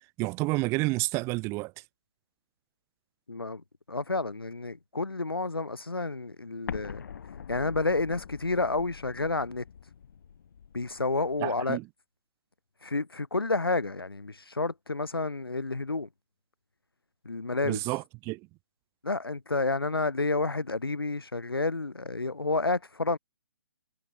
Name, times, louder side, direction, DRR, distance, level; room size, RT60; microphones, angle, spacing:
voice 1, 0.2-1.7 11.4-11.8 17.6-18.4, right 24 dB, 20° right, 2.8 m, -29 dB
voice 2, 3.3-7.0 7.5-9.6 10.7-11.8 12.8-16.1 17.2-17.8 19.0-23.2, left 3 dB, 80° left, 1.4 m, -30 dB
Explosion, 6.7-11.4, left 7 dB, 50° left, 4.4 m, -44 dB
figure-of-eight pair, 130°, 12 cm